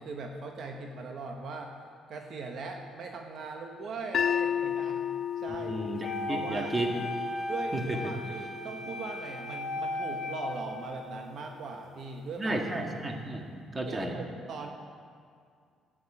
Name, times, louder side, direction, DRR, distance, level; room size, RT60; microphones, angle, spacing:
voice 1, 0.0-1.7 2.1-5.1 5.4-5.8 6.3-6.7 7.4-12.6 13.8-14.7, right 3 dB, 60° right, 3 dB, 1.3 m, -40 dB
sound 1, 4.1-10.3, left 8 dB, 55° left, 0.4 m, -34 dB
voice 2, 5.7-6.9 7.7-7.8 12.4-14.1, right 2 dB, 25° right, 2 dB, 2.0 m, -33 dB
Wind instrument woodwind instrument, 6.0-11.1, left 1 dB, 30° left, 2.2 m, -36 dB
12.0 x 9.5 x 8.7 m, 2.2 s
cardioid pair, 100°, 0 cm